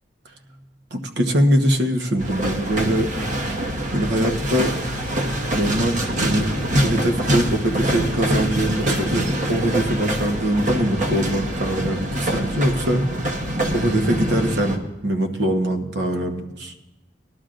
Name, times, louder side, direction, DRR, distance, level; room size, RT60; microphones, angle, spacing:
voice 1, 0.9-3.1 3.9-4.7 5.5-6.5 6.8-13.3 13.7-16.7, right 1 dB, 65° right, 5 dB, 1.1 m, -22 dB
sound 1, 2.2-14.8, right 1 dB, 45° right, 1.0 m, -24 dB
19.5 x 12.0 x 2.6 m, 0.99 s
head